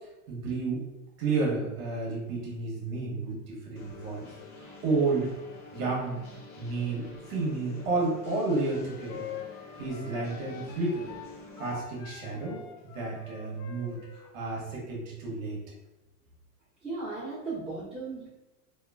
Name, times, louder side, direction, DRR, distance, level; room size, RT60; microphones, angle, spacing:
voice 1, 0.3-0.8 1.2-4.3 4.5-5.3 5.7-6.2 6.6-9.3 9.8-11.0 11.6-15.6, right 3 dB, 65° right, -3 dB, 1.0 m, -31 dB
sound 1, 3.8-11.8, left 2 dB, 55° left, 0.8 m, -47 dB
sound 2, 8.2-14.7, left 8 dB, 75° left, 0.5 m, -46 dB
voice 2, 16.8-18.3, right 3 dB, ahead, -16 dB, 1.2 m, -36 dB
2.9 x 2.3 x 2.3 m, 1.0 s
supercardioid pair, 170°, 44 cm